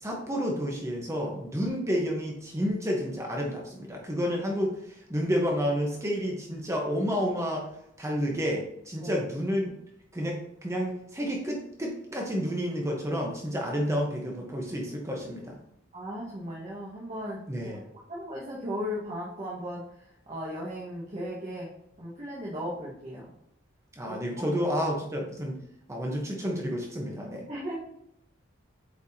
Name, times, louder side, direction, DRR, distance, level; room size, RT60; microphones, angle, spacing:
voice 1, 0.0-7.7 8.0-9.7 10.1-15.6 17.5-17.8 24.0-25.6 25.9-27.5, equal, 15° right, -1 dB, 1.0 m, -30 dB
voice 2, 15.9-19.8 20.3-21.7 22.0-23.3 24.1-24.2 27.5-27.8, equal, 35° right, -6 dB, 1.5 m, -36 dB
8.4 x 4.7 x 2.8 m, 0.76 s
head